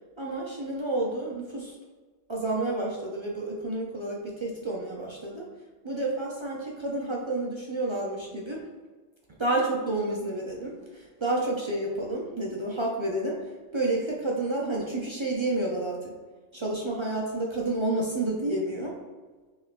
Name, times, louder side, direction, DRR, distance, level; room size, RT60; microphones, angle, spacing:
voice 1, 0.2-1.8 2.3-5.5 5.8-8.7 9.4-16.1 16.5-19.0, right 2 dB, 40° right, -3 dB, 0.4 m, -30 dB
5.6 x 3.1 x 2.3 m, 1.4 s
omnidirectional pair, 1.2 m